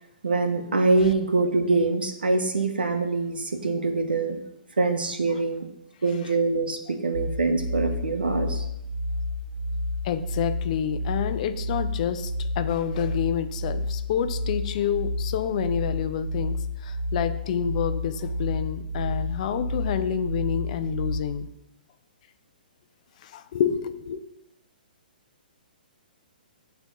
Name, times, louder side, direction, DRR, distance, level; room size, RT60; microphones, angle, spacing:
voice 1, 0.2-4.4 4.8-5.7 6.0-8.6, right 3 dB, 90° right, 6 dB, 1.1 m, -24 dB
sound 1, 7.1-21.2, left 1 dB, 90° left, 1.4 m, -30 dB
voice 2, 10.0-16.6 16.8-21.5 23.2-24.2, left 8 dB, 50° left, 10 dB, 0.6 m, -28 dB
9.0 x 3.5 x 5.4 m, 0.84 s
hypercardioid pair, 135°, 5 cm